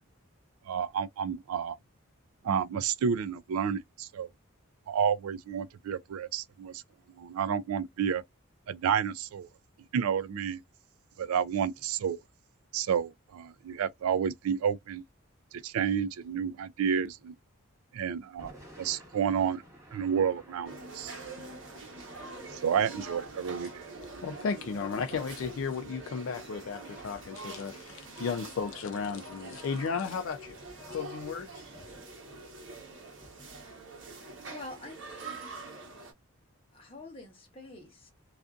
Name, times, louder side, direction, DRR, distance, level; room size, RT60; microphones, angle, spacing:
voice 1, 0.7-1.7 2.4-4.3 4.9-6.8 7.1-8.2 8.7-9.5 9.9-10.6 11.2-12.2 12.7-15.0 15.6-17.3 17.9-18.5 18.8-19.6 19.9-21.1 22.5-23.9, right 7 dB, 85° right, 0.3 m, -30 dB
Thunder / Rain, 18.2-34.5, equal, 15° right, 0.9 m, -55 dB
sound 1, 20.6-36.1, right 3 dB, 60° right, 0.9 m, -45 dB
voice 2, 24.2-30.6 30.9-31.6, left 5 dB, 65° left, 0.4 m, -34 dB
voice 3, 34.5-35.4 36.7-38.1, left 2 dB, 25° left, 0.9 m, -46 dB
2.5 x 2.4 x 2.3 m
head